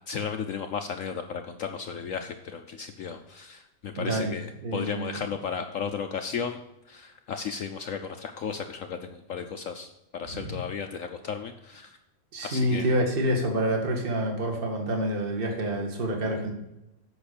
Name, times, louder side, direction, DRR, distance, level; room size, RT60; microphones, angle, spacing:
voice 1, 0.1-6.6 6.9-11.9 12.4-12.9, left 6 dB, 70° left, 6 dB, 0.8 m, -34 dB
voice 2, 4.0-4.3 4.6-5.2 10.3-10.6 12.3-16.5, right 1 dB, 30° right, 1 dB, 1.8 m, -27 dB
8.1 x 6.0 x 6.6 m, 0.91 s
omnidirectional pair, 2.0 m